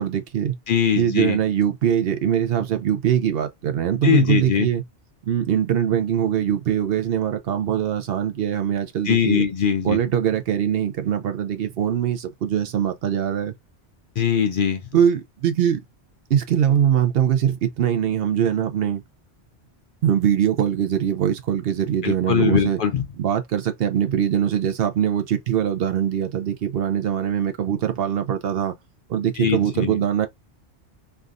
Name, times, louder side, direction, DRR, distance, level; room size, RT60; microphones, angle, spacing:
voice 1, 0.0-0.6 1.0-4.8 5.3-9.4 9.8-13.6 14.9-15.8 16.3-19.0 20.0-22.8 23.2-28.7 29.1-30.3, right 9 dB, 65° right, 0.7 m, -22 dB
voice 2, 0.7-1.4 4.0-4.7 9.0-10.0 14.2-14.8 22.0-23.0 29.4-30.0, left 8 dB, 60° left, 0.6 m, -21 dB
3.4 x 2.3 x 2.4 m
omnidirectional pair, 1.2 m